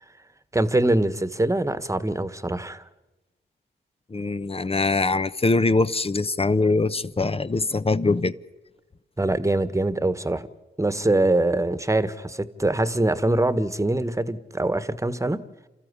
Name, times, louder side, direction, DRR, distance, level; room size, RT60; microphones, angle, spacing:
voice 1, 0.5-2.8 9.2-10.5 10.8-15.4, right 2 dB, 15° right, 1.5 m, -23 dB
voice 2, 4.1-8.3, left 3 dB, 30° left, 1.0 m, -23 dB
28.0 x 13.5 x 9.8 m
supercardioid pair, 40°, 21 cm